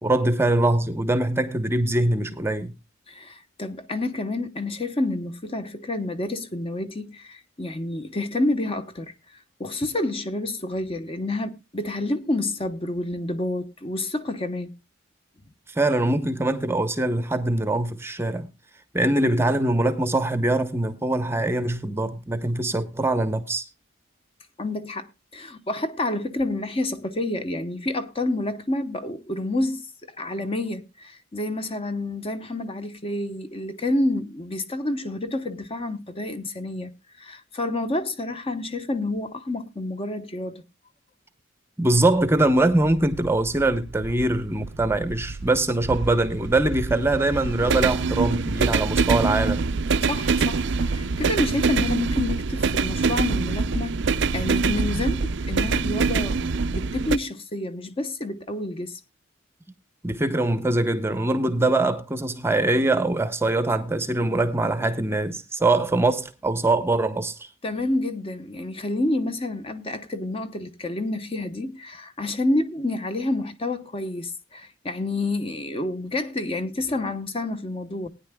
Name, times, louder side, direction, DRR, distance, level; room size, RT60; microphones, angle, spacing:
voice 1, 0.0-2.7 15.7-18.5 18.9-23.7 41.8-49.6 60.0-67.5, right 2 dB, 10° right, 0.8 m, -23 dB
voice 2, 3.1-9.1 9.6-14.7 24.6-25.1 25.3-36.9 37.2-40.6 50.1-59.0 67.6-78.1, left 2 dB, 25° left, 0.9 m, -29 dB
sound 1, 42.0-57.2, right 4 dB, 60° right, 0.5 m, -25 dB
20.0 x 9.7 x 2.2 m
head